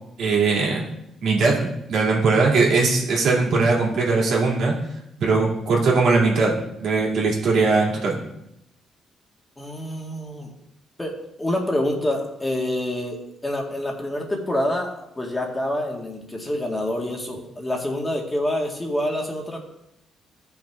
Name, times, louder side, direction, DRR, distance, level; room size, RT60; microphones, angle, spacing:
voice 1, 0.2-0.8 1.2-4.7 5.2-6.5 6.8-8.2, right 4 dB, 70° right, -3 dB, 2.6 m, -20 dB
voice 2, 9.6-10.5 11.0-11.1 11.4-19.6, left 1 dB, 15° left, 0 dB, 1.9 m, -27 dB
14.0 x 5.9 x 3.6 m, 0.81 s
cardioid pair, 90°, 0 cm